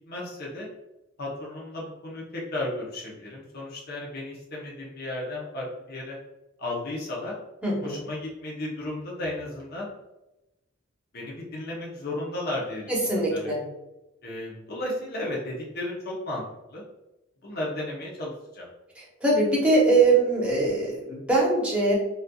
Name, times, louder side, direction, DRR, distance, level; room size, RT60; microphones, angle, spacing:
voice 1, 0.1-0.7 1.2-6.2 6.6-7.3 7.8-9.9 11.1-13.5 14.2-16.8 17.4-18.7, left 1 dB, 50° left, -3 dB, 0.8 m, -34 dB
voice 2, 7.6-8.1 12.9-13.6 18.9-21.9, right 2 dB, 5° right, -5 dB, 0.9 m, -22 dB
4.1 x 2.5 x 2.3 m, 0.97 s
head